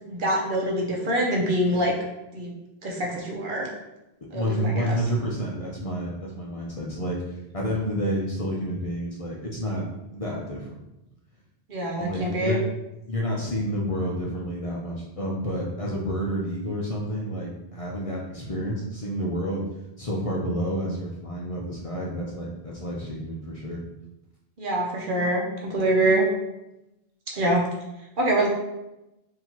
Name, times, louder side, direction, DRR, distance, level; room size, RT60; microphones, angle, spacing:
voice 1, 0.1-1.9 2.3-2.5 2.8-3.7 4.3-4.9 11.7-12.6 24.6-26.3 27.3-27.6 28.2-28.5, right 1 dB, 60° right, -2 dB, 0.9 m, -24 dB
voice 2, 4.3-9.8 10.1-10.7 12.0-12.6 13.1-19.6 20.0-23.8, equal, 40° left, -3 dB, 0.6 m, -29 dB
4.1 x 2.8 x 2.9 m, 0.92 s
omnidirectional pair, 1.0 m